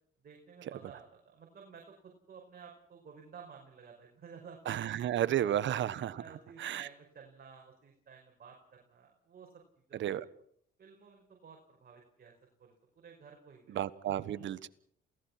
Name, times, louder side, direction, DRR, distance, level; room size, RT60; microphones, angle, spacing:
voice 1, 0.2-5.6 6.2-9.6 9.9-10.0 10.8-12.3 12.6-13.8 14.4-14.5, right 6 dB, 50° right, 1 dB, 5.2 m, -54 dB
voice 2, 4.7-6.2 6.6-6.9 9.9-10.2 13.7-14.7, right 11 dB, 70° right, 15 dB, 1.3 m, -32 dB
28.0 x 17.5 x 5.9 m, 0.65 s
cardioid pair, 90°, 20 cm